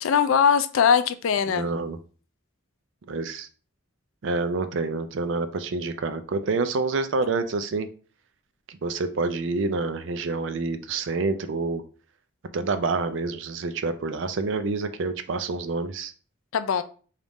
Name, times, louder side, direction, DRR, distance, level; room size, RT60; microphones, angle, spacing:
voice 1, 0.0-1.7 16.5-16.8, left 7 dB, 80° left, 0.4 m, -21 dB
voice 2, 1.5-2.0 3.1-3.5 4.2-7.9 8.7-11.8 12.5-16.1, right 3 dB, 65° right, 0.4 m, -27 dB
3.5 x 2.4 x 4.0 m
head